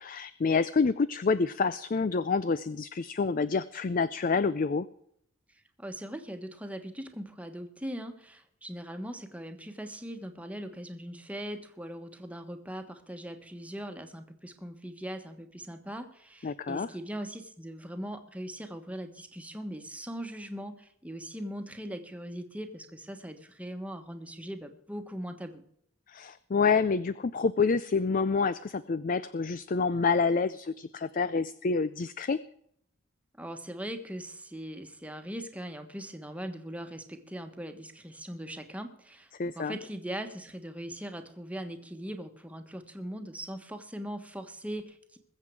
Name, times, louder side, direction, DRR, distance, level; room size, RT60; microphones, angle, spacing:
voice 1, 0.0-4.9 16.4-16.9 26.1-32.4 39.4-39.8, left 4 dB, 40° left, 15 dB, 0.4 m, -28 dB
voice 2, 5.8-25.6 33.4-39.3 39.5-45.2, equal, 5° right, 6 dB, 1.3 m, -40 dB
21.5 x 7.5 x 4.7 m, 0.68 s
head